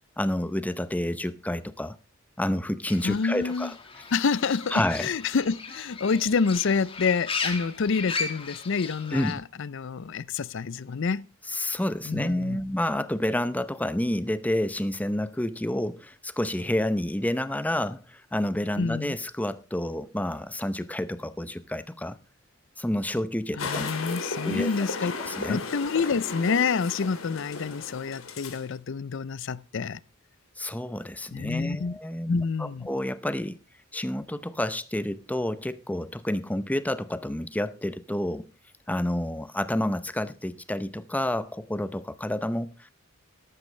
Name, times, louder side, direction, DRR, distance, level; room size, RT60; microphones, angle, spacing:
voice 1, 0.2-2.0 2.4-3.7 4.7-5.1 9.1-9.4 11.5-22.2 22.8-23.9 24.4-24.9 25.2-25.6 30.6-33.6 33.9-38.5 38.9-42.9, left 1 dB, 10° left, 0.7 m, -29 dB
Fowl / Bird, 2.9-9.3, left 4 dB, 25° left, 1.7 m, -36 dB
voice 2, 3.0-3.7 4.1-11.3 12.0-12.6 18.8-19.1 23.6-25.1 25.5-30.0 31.3-32.0 32.3-32.9, left 5 dB, 65° left, 0.5 m, -28 dB
sound 1, 23.6-28.7, left 4 dB, 80° left, 2.5 m, -35 dB
13.5 x 11.5 x 3.3 m
head